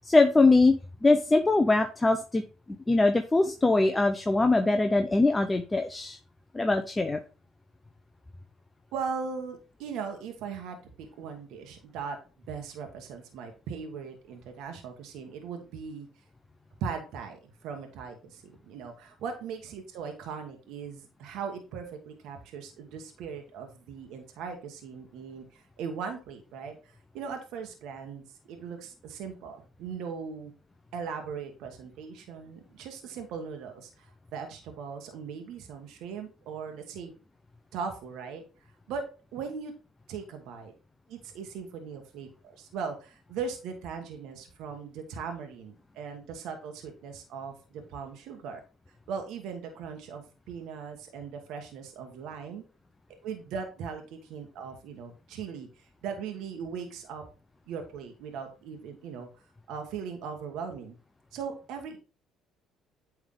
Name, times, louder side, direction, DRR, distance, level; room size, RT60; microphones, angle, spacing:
voice 1, 0.0-0.7 1.0-2.4 2.9-6.2 6.5-7.2, left 3 dB, 20° left, 6 dB, 0.6 m, -22 dB
voice 2, 8.9-10.8 11.2-12.2 12.5-16.1 16.8-30.5 30.9-37.1 37.7-38.4 38.9-39.0 39.3-39.7 40.1-40.7 41.1-48.6 49.1-52.6 53.2-55.7 56.0-57.2 57.7-59.3 59.7-61.0 61.3-62.0, right 6 dB, 75° right, 5 dB, 1.3 m, -39 dB
8.7 x 3.5 x 3.7 m, 0.34 s
supercardioid pair, 80°, 0 cm